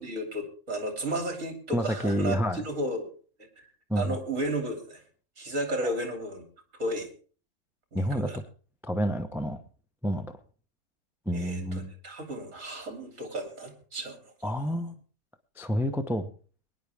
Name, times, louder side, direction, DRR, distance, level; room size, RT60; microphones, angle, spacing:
voice 1, 0.0-3.1 3.6-3.7 3.9-5.0 5.4-6.4 6.8-7.1 7.9-8.4 11.3-14.5, right 1 dB, 50° right, 4 dB, 3.3 m, -33 dB
voice 2, 1.7-2.6 3.9-4.2 7.9-8.4 8.8-9.6 10.0-10.3 11.3-11.9 14.4-14.9 15.6-16.3, equal, ahead, 8 dB, 0.5 m, -28 dB
22.5 x 10.5 x 3.5 m, 0.40 s
omnidirectional pair, 1.7 m